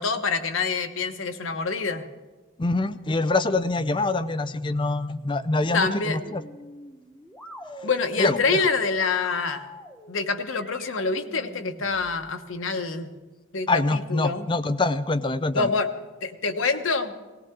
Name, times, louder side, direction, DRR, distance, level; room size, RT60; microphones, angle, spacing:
voice 1, 0.0-2.0 5.7-6.2 7.8-9.7 10.1-13.1 13.5-14.5 15.5-15.9 16.2-17.1, left 4 dB, 85° left, 7 dB, 1.1 m, -26 dB
voice 2, 2.6-6.4 7.8-7.9 8.2-8.6 13.7-15.7, left 2 dB, 25° left, 12 dB, 0.5 m, -25 dB
sound 1, 3.7-12.3, left 1 dB, 5° left, 0.9 m, -43 dB
18.5 x 18.0 x 3.7 m, 1.3 s
head